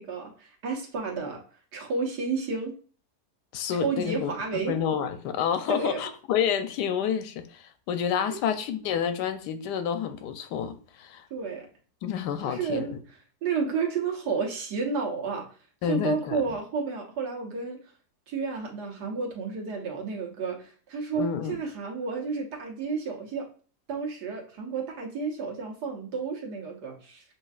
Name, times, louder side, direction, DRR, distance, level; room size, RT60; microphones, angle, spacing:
voice 1, 0.0-1.4 1.7-2.7 3.7-4.7 5.7-6.0 8.3-8.4 11.3-11.7 12.4-12.9 13.4-15.4 15.9-17.8 18.3-23.5 23.9-27.2, right 5 dB, 80° right, 1.6 m, -31 dB
voice 2, 3.5-11.3 12.0-13.0 15.8-16.4 21.1-21.6, left 8 dB, 85° left, 1.2 m, -29 dB
7.5 x 2.6 x 2.4 m
omnidirectional pair, 1.7 m